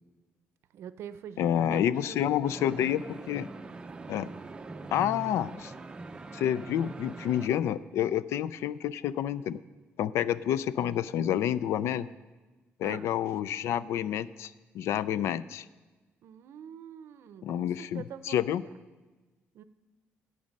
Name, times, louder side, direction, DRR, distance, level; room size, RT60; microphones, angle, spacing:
voice 1, 0.7-3.0 12.8-13.1 16.2-18.4 19.5-19.6, right 9 dB, 70° right, 13 dB, 0.6 m, -45 dB
voice 2, 1.4-3.5 4.1-4.3 4.9-5.7 6.3-9.6 10.0-12.1 12.8-15.7 17.4-18.6, left 10 dB, 90° left, 17 dB, 0.4 m, -29 dB
sound 1, 2.4-7.5, right 3 dB, 20° right, 0.5 m, -42 dB
17.0 x 6.4 x 5.3 m, 1.3 s
cardioid pair, 165°, 5 cm